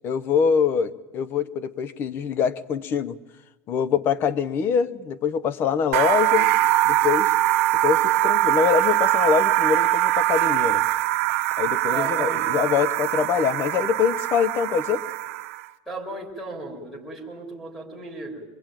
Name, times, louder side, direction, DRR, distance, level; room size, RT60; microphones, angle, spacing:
voice 1, 0.0-3.2 3.7-6.5 6.8-7.3 7.8-10.8 11.6-15.0, left 7 dB, 30° left, 18 dB, 0.8 m, -24 dB
sound 1, 5.9-15.6, right 15 dB, 80° right, 1.1 m, -22 dB
voice 2, 11.9-12.7 15.9-18.4, right 2 dB, 5° left, -3 dB, 3.6 m, -35 dB
24.0 x 21.5 x 9.0 m, 1.1 s
cardioid pair, 180°, 8 cm